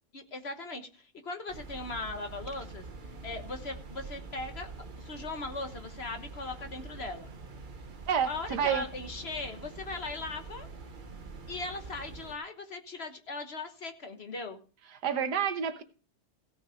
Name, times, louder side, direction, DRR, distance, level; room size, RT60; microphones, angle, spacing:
voice 1, 0.1-2.9 3.2-4.7 5.0-7.3 8.3-10.7 11.5-14.6, left 3 dB, 45° left, 6 dB, 1.4 m, -39 dB
sound 1, 1.5-12.4, right 3 dB, 35° right, 1.0 m, -45 dB
voice 2, 8.1-8.8 15.0-15.8, right 8 dB, 90° right, 8 dB, 1.7 m, -29 dB
16.5 x 6.2 x 5.0 m, 0.38 s
omnidirectional pair, 1.7 m